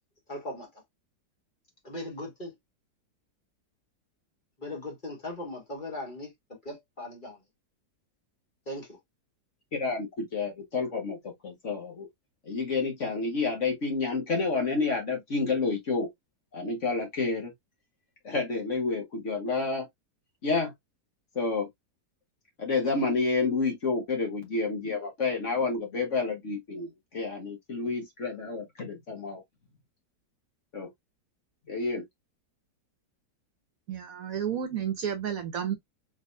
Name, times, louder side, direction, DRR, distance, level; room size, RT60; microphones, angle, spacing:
voice 1, 0.3-0.7 1.8-2.5 4.6-6.3 6.6-7.4 8.7-9.0, left 1 dB, 30° left, 1.6 m, -38 dB
voice 2, 9.7-11.2 11.4-12.1 12.5-16.1 16.5-17.5 18.2-19.9 20.4-20.7 21.3-21.7 22.6-29.4 30.7-30.9 31.7-32.0, left 4 dB, 45° left, 1.4 m, -29 dB
voice 3, 33.9-35.8, right 8 dB, 60° right, 1.1 m, -31 dB
4.2 x 3.5 x 2.6 m
omnidirectional pair, 1.9 m